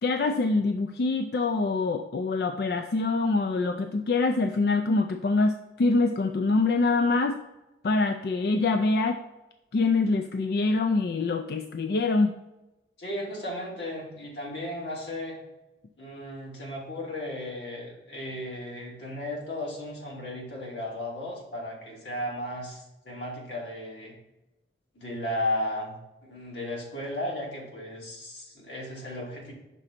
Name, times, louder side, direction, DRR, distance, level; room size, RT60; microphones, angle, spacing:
voice 1, 0.0-7.4 7.8-9.2 9.7-12.3, left 3 dB, 60° left, 7 dB, 0.4 m, -25 dB
voice 2, 13.0-15.4 16.0-24.2 24.9-29.5, left 1 dB, 90° left, -3 dB, 2.5 m, -35 dB
6.1 x 3.9 x 5.8 m, 0.99 s
head